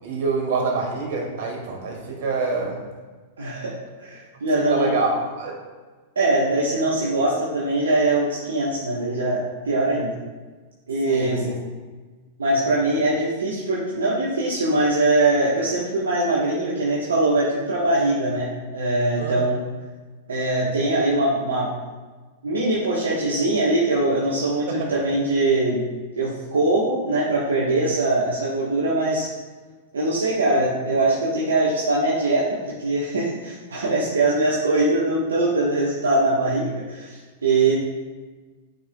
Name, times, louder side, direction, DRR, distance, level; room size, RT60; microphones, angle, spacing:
voice 1, 0.0-2.8 4.5-5.5 11.0-11.4 19.2-19.4 24.9-25.0, right 3 dB, 60° right, -1 dB, 2.1 m, -26 dB
voice 2, 3.4-3.7 4.0-5.0 6.1-10.1 10.9-11.5 12.4-19.6 20.3-21.7 22.4-25.8 26.1-29.3 29.9-37.7, right 2 dB, 80° right, -6 dB, 1.2 m, -22 dB
10.0 x 5.5 x 2.3 m, 1.3 s
hypercardioid pair, 105°, 0 cm